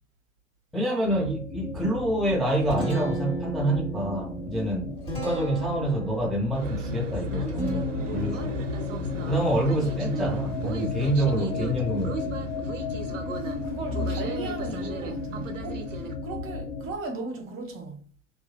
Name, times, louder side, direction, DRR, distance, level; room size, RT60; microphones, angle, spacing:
voice 1, 0.7-8.7 9.3-12.5, right 1 dB, ahead, 0.4 m, -27 dB
sound 1, 1.1-16.9, left 4 dB, 75° left, 0.6 m, -34 dB
Guitar, 2.3-12.0, right 2 dB, 15° left, 1.3 m, -38 dB
sound 2, 6.5-16.1, right 4 dB, 85° right, 0.5 m, -36 dB
voice 2, 13.6-15.9 16.2-18.0, right 2 dB, 35° right, 0.8 m, -36 dB
2.6 x 2.3 x 2.3 m
figure-of-eight pair, 75°, 36 cm